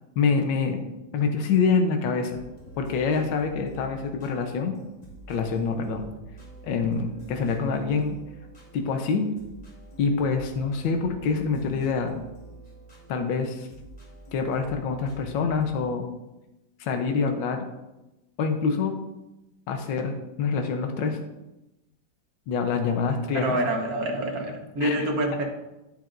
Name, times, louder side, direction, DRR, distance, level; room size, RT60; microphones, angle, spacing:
voice 1, 0.2-0.8 1.1-2.4 2.8-4.7 5.3-6.0 6.6-8.2 8.7-9.3 10.0-12.2 13.1-13.7 14.3-16.0 16.8-17.6 18.4-18.9 19.7-21.2 22.5-23.6 24.8-24.9, left 5 dB, 75° left, 5 dB, 1.6 m, -26 dB
sound 1, 2.2-15.8, right 2 dB, 20° left, 1.6 m, -47 dB
voice 2, 23.3-25.4, right 1 dB, 50° right, 2 dB, 1.6 m, -27 dB
9.2 x 8.4 x 2.6 m, 0.96 s
omnidirectional pair, 2.1 m